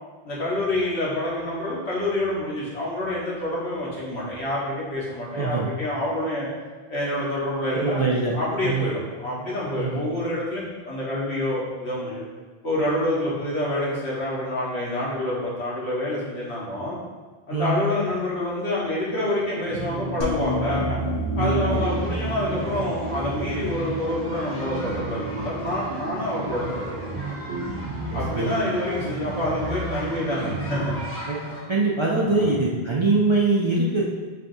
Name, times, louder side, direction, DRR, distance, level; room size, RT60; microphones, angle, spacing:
voice 1, 0.2-6.5 6.9-8.0 8.3-12.2 12.6-16.9 17.5-21.0 21.3-27.3 28.1-30.9 32.2-32.5, left 1 dB, 90° left, -7 dB, 1.6 m, -27 dB
voice 2, 5.3-5.7 7.7-8.3 8.6-8.9 9.7-10.0 17.5-17.8 21.4-21.8 28.1-28.5 31.3-31.4 31.7-34.0, right 3 dB, 45° right, -5 dB, 0.4 m, -23 dB
sound 1, 19.7-31.6, right 2 dB, 85° right, 0.8 m, -32 dB
sound 2, 20.2-25.4, equal, 40° left, 0.6 m, -32 dB
sound 3, 21.7-31.6, equal, 15° left, 1.1 m, -40 dB
5.8 x 3.2 x 2.6 m, 1.4 s
omnidirectional pair, 1.1 m